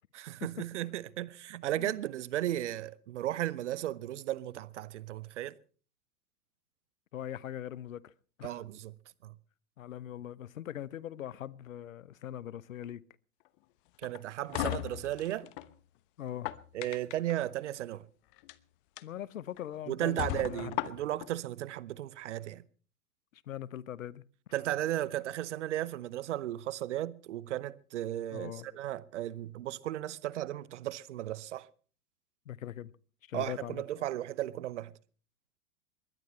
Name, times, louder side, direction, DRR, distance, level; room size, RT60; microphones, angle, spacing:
voice 1, 0.1-5.6 8.4-8.9 9.2-9.3 14.0-15.5 16.7-18.1 19.9-22.6 24.5-31.7 33.3-34.9, right 13 dB, 50° right, 0.9 m, -35 dB
voice 2, 7.1-8.1 8.4-8.6 9.8-13.0 16.2-16.5 19.0-20.7 23.5-24.2 28.3-28.8 32.5-32.9 33.3-33.8, left 11 dB, 60° left, 0.9 m, -41 dB
sound 1, 14.0-15.7 16.2-17.3 18.3-18.5 19.0-19.1 19.6-19.7 20.2-21.3, left 16 dB, 35° left, 1.0 m, -36 dB
22.0 x 20.0 x 3.2 m
figure-of-eight pair, 100°, 46 cm